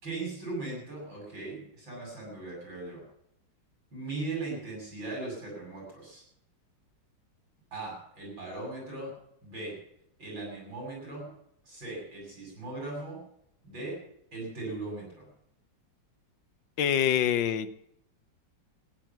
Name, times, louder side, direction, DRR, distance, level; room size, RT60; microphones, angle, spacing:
voice 1, 0.0-3.0 3.9-6.2 7.7-9.1 9.4-9.8 10.2-11.3 11.6-13.2 13.6-14.0 14.3-15.3, right 2 dB, 90° right, -2 dB, 8.2 m, -38 dB
voice 2, 16.8-17.9, left 9 dB, 85° left, 12 dB, 1.6 m, -26 dB
15.0 x 10.5 x 7.3 m, 0.75 s
omnidirectional pair, 2.0 m